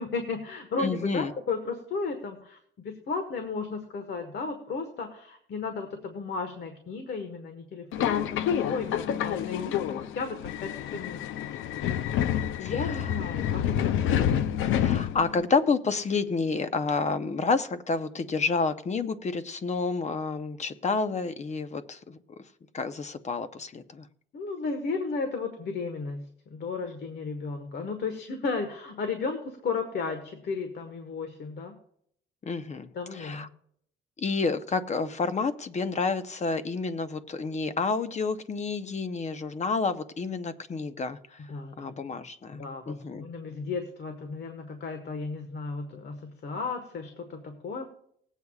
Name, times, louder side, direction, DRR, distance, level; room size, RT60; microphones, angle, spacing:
voice 1, 0.0-11.2 11.5-11.8 12.2-14.3 24.3-26.2 26.5-31.7 32.9-33.5 41.5-41.9 42.5-47.9, left 4 dB, 60° left, 6 dB, 1.5 m, -34 dB
voice 2, 0.8-1.3 12.6-13.1 14.8-22.2 22.7-24.1 32.4-33.5 34.2-41.4 41.8-42.6 42.9-43.2, left 4 dB, 35° left, 11 dB, 0.8 m, -29 dB
Subway metro underground, 7.9-15.5, left 10 dB, 90° left, 0.6 m, -28 dB
20.0 x 8.2 x 2.4 m, 0.68 s
cardioid pair, 90°, 20 cm